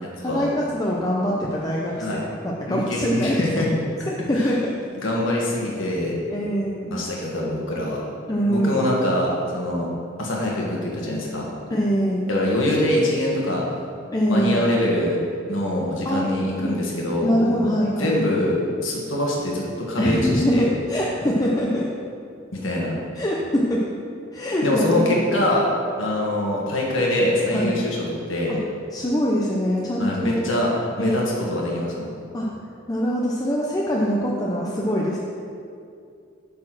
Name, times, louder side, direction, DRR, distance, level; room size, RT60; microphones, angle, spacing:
voice 1, 0.2-3.6 4.1-4.7 6.3-6.9 8.3-8.8 11.7-12.3 14.1-14.7 16.0-16.8 17.2-18.2 20.0-21.9 23.2-23.8 24.3-25.2 27.5-27.8 28.5-28.6 28.9-30.4 31.0-31.5 32.3-32.5 32.9-35.2, equal, 20° left, -4 dB, 0.6 m, -24 dB
voice 2, 2.7-3.7 4.3-4.6 4.9-6.1 6.9-8.0 8.5-9.9 10.2-11.5 12.3-13.6 14.3-15.2 15.5-17.7 18.0-20.7 22.5-23.0 24.6-25.7 26.0-28.0 28.3-28.5 30.0-32.1, left 1 dB, 80° left, -3 dB, 1.6 m, -24 dB
8.7 x 4.3 x 6.1 m, 2.5 s
head